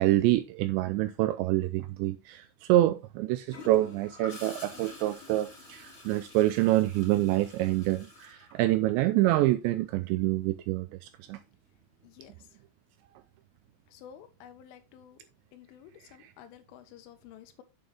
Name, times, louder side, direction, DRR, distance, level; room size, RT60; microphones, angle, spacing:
voice 1, 0.0-10.9 11.3-11.4, right 16 dB, 85° right, 2.5 m, -26 dB
Gurgling / Toilet flush, 3.5-9.2 11.2-11.5, left 2 dB, 25° left, 1.6 m, -48 dB
voice 2, 12.0-12.3 13.9-15.2 15.5-17.6, left 10 dB, 85° left, 3.7 m, -51 dB
8.6 x 7.6 x 3.4 m
omnidirectional pair, 5.6 m